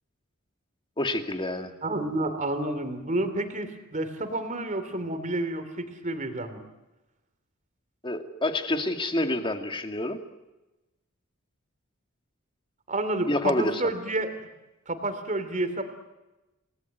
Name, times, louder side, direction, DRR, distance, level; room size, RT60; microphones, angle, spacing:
voice 1, 1.0-1.7 8.0-10.2 13.2-13.8, left 1 dB, 20° left, 6 dB, 2.1 m, -28 dB
voice 2, 1.8-6.6 12.9-14.4 14.9-15.8, right 2 dB, 35° right, 9 dB, 3.1 m, -30 dB
29.0 x 19.0 x 9.4 m, 1.0 s
head